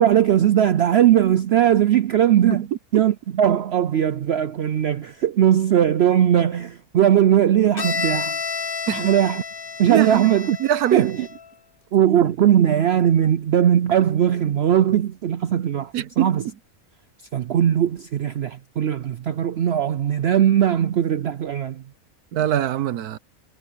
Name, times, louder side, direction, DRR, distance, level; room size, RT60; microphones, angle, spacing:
voice 1, 0.0-2.7 2.9-8.4 8.9-9.4 9.8-10.6 10.9-11.3 11.9-16.4 17.3-21.8, right 10 dB, 65° right, 0.6 m, -19 dB
Bowed string instrument, 7.8-11.5, left 5 dB, 40° left, 1.4 m, -30 dB
voice 2, 9.9-10.3 10.6-11.1 15.9-16.5 22.3-23.2, right 11 dB, 85° right, 1.4 m, -23 dB
omnidirectional pair, 1.6 m